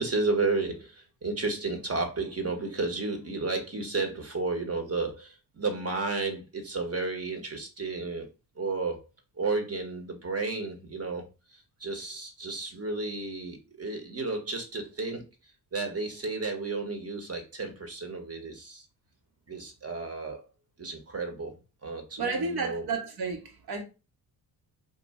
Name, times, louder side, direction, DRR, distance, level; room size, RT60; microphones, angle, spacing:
voice 1, 0.0-8.3 8.6-9.0 9.4-15.3 15.7-18.9 19.5-20.5 20.8-21.6 21.8-22.9, right 3 dB, 30° right, 1.2 m, -32 dB
voice 2, 22.2-23.8, right 4 dB, 55° right, 1.2 m, -31 dB
2.6 x 2.5 x 4.1 m
supercardioid pair, 50°, 46 cm